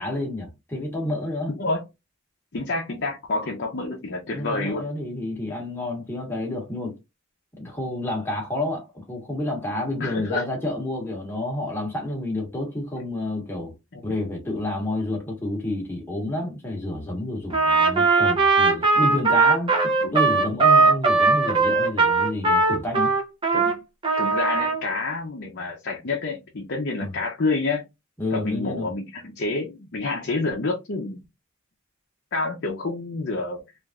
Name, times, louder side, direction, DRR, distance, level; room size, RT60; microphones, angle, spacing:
voice 1, 0.0-1.5 4.3-7.0 7.6-13.7 14.0-19.7 20.1-23.1 27.0-27.1 28.2-28.9, left 1 dB, 10° left, 1.1 m, -29 dB
voice 2, 2.5-4.9 10.0-10.5 13.9-14.2 20.0-20.5 23.5-23.7 24.2-27.8 28.3-31.2 32.3-33.6, left 3 dB, 55° left, 0.6 m, -28 dB
Trumpet, 17.5-23.7 24.0-24.8, right 4 dB, 25° right, 0.6 m, -19 dB
3.3 x 2.5 x 2.3 m
head